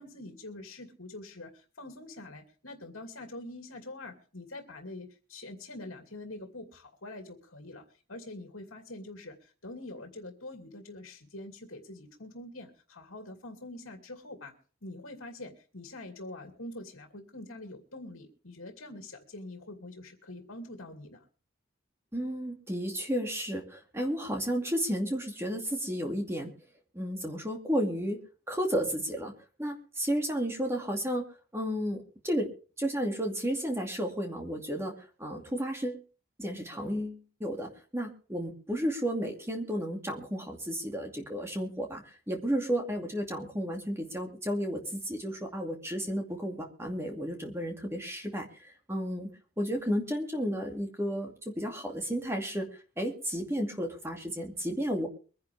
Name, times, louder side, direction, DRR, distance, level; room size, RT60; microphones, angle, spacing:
voice 1, 0.0-14.5 14.8-21.3, left 2 dB, 75° left, 4 dB, 2.6 m, -45 dB
voice 2, 22.1-26.5 26.9-28.2 28.5-29.3 29.6-31.2 31.5-32.5 32.8-36.0 36.4-49.3 49.6-52.7 53.0-55.1, equal, 10° right, 2 dB, 2.4 m, -32 dB
23.5 x 10.5 x 3.5 m, 0.38 s
head